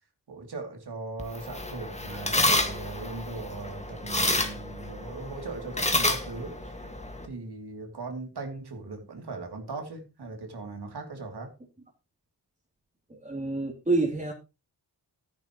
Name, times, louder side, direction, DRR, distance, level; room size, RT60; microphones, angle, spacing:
voice 1, 0.3-6.9 7.2-11.5, right 3 dB, 65° right, 3.0 m, -39 dB
sound 1, 1.2-7.3, left 1 dB, 15° left, 1.9 m, -29 dB
voice 2, 13.1-14.3, right 3 dB, 20° right, 3.1 m, -28 dB
14.0 x 10.5 x 3.1 m
wide cardioid pair, 100°, 42 cm